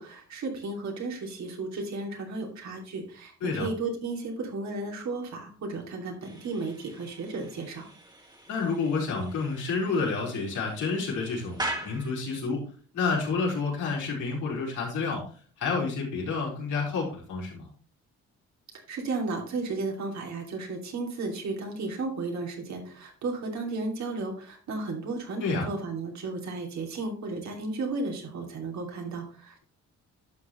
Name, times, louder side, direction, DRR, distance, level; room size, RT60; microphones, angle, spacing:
voice 1, 0.0-7.9 18.9-29.6, right 3 dB, 65° right, 1 dB, 2.7 m, -34 dB
sound 1, 6.2-12.4, right 1 dB, 15° right, 2.1 m, -41 dB
voice 2, 8.5-12.6 12.9-15.2 15.6-17.7 25.4-25.7, left 4 dB, 80° left, -3 dB, 4.3 m, -29 dB
11.5 x 6.4 x 3.1 m, 0.42 s
cardioid pair, 90°, 30 cm